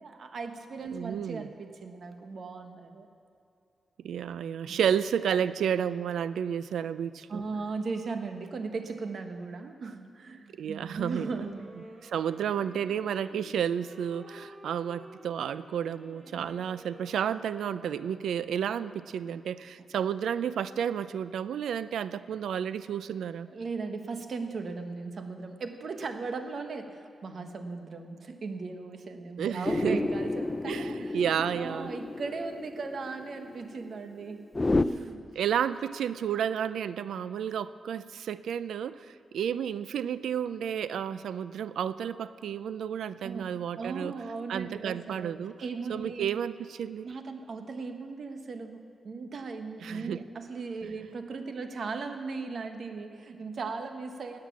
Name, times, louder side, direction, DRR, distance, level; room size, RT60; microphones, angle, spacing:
voice 1, 0.0-3.1 4.7-4.8 7.3-11.7 16.3-16.5 23.5-31.2 31.5-34.5 34.8-35.2 43.2-46.3 47.0-54.4, right 4 dB, 65° right, 6 dB, 1.3 m, -38 dB
voice 2, 0.9-1.5 4.0-7.4 10.5-11.3 12.0-23.5 29.4-30.0 30.6-31.9 35.3-44.2 44.5-45.6 45.9-47.1 49.8-50.2, right 8 dB, 90° right, 15 dB, 0.4 m, -31 dB
Wind instrument woodwind instrument, 11.0-18.7, right 1 dB, 45° right, 3.6 m, -51 dB
sound 1, 29.6-34.8, left 2 dB, 25° left, 0.5 m, -31 dB
17.5 x 9.4 x 7.2 m, 2.5 s
cardioid pair, 70°, 0 cm